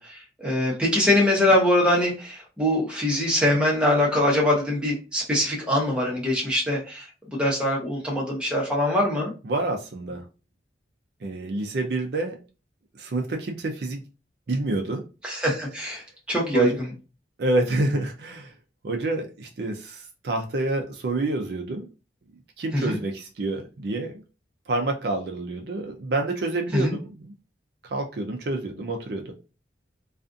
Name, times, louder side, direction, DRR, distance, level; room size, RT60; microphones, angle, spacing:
voice 1, 0.0-9.3 15.2-16.0 16.3-16.9 22.7-23.0 26.7-27.0, left 1 dB, 5° right, 0.8 m, -23 dB
voice 2, 9.4-10.2 11.2-12.4 12.9-14.0 14.5-15.0 16.5-16.8 17.4-18.5 18.8-21.8 22.6-24.1 24.7-27.3 27.8-29.3, right 2 dB, 60° right, 0.4 m, -28 dB
2.4 x 2.4 x 2.5 m
head